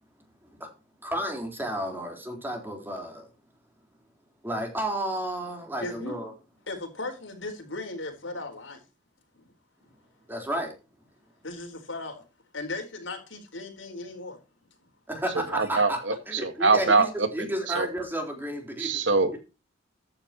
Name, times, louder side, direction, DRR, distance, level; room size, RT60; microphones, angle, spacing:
voice 1, 1.0-3.3 4.4-6.3 10.3-10.7 15.1-16.0 16.3-19.0, right 1 dB, 10° right, 4.0 m, -32 dB
voice 2, 5.8-6.2 6.7-8.8 9.3-9.5 11.4-12.2 12.5-14.4, left 2 dB, 85° left, 4.4 m, -37 dB
voice 3, 15.3-17.9 18.8-19.4, right 4 dB, 70° right, 1.8 m, -24 dB
14.0 x 9.8 x 3.0 m
head